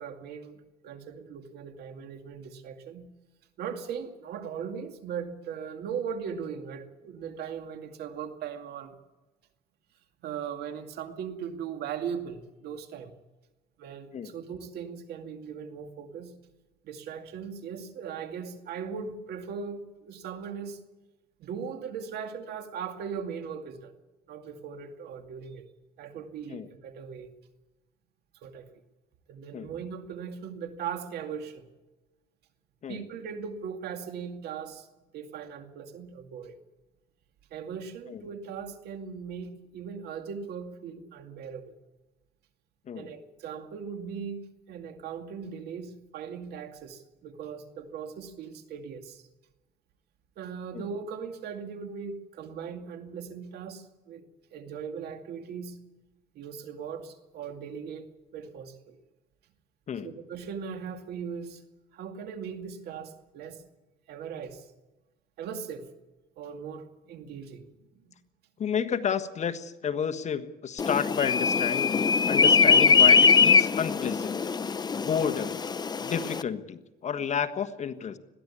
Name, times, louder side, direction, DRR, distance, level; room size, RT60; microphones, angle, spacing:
voice 1, 0.0-3.1 3.6-9.0 10.2-13.1 13.8-16.4 16.8-20.8 21.4-23.9 24.3-25.6 26.0-27.3 28.4-28.7 29.3-31.7 32.9-34.9 35.1-36.6 37.5-41.7 43.0-44.4 44.7-49.2 50.4-54.2 54.5-55.8 56.3-58.1 58.3-59.0 60.0-61.6 61.9-63.6 64.1-64.7 65.4-65.9 66.4-67.6 68.0-68.1 75.1-75.3, right 7 dB, 70° right, 6 dB, 2.4 m, -39 dB
voice 2, 68.6-74.4 74.9-75.6 76.0-78.2, left 7 dB, 45° left, 9 dB, 1.4 m, -31 dB
sound 1, 70.8-76.4, left 5 dB, 25° left, 0.7 m, -22 dB
21.0 x 15.0 x 8.6 m, 1.1 s
cardioid pair, 110°, 17 cm